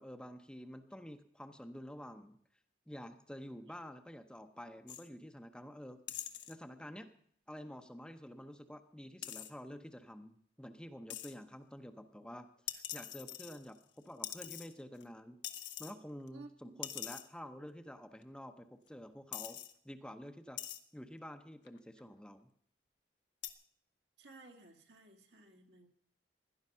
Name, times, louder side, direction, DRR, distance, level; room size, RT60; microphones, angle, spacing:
voice 1, 0.0-2.4 2.9-6.0 6.5-7.1 7.5-15.4 15.8-19.6 19.8-20.6 20.9-22.5, equal, 5° left, 7 dB, 0.8 m, -49 dB
sound 1, 4.9-5.1 6.1-6.6 9.2-9.5 11.1-11.3 12.7-13.8 14.2-15.0 15.4-15.9 16.3-16.4 16.8-17.3 18.2-18.3 18.9-19.0 19.3-19.7 20.6-20.8 21.7-22.0 23.4-23.5, left 12 dB, 85° left, 1.2 m, -44 dB
voice 2, 16.3-16.8 24.2-25.9, right 3 dB, 75° right, 2 dB, 2.2 m, -56 dB
17.0 x 11.0 x 5.6 m, 0.63 s
head